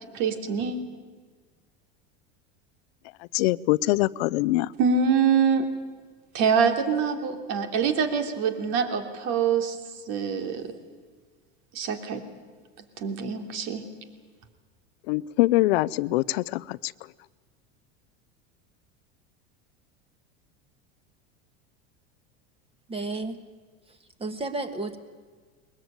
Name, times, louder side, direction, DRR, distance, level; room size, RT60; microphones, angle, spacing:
voice 1, 0.1-0.8 4.8-5.6 6.3-9.8 10.1-10.7 11.7-12.2 13.0-13.9, right 6 dB, 60° right, 3.1 m, -25 dB
voice 2, 3.3-4.7 15.1-16.9, left 18 dB, 75° left, 0.6 m, -23 dB
voice 3, 22.9-23.4 24.2-25.0, right 2 dB, 20° right, 1.9 m, -32 dB
21.5 x 20.5 x 9.0 m
supercardioid pair, 115°, 31 cm